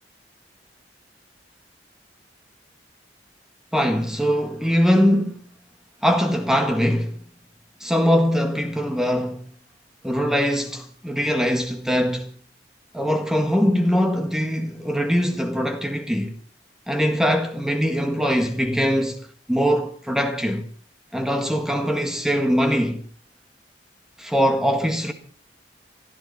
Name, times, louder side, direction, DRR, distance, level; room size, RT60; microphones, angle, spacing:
voice 1, 3.7-5.4 6.0-7.2 7.8-9.4 10.0-12.3 12.9-16.4 16.9-20.6 21.1-23.0 24.2-25.1, equal, 5° right, 1.6 m, -22 dB
24.0 x 13.5 x 4.1 m
head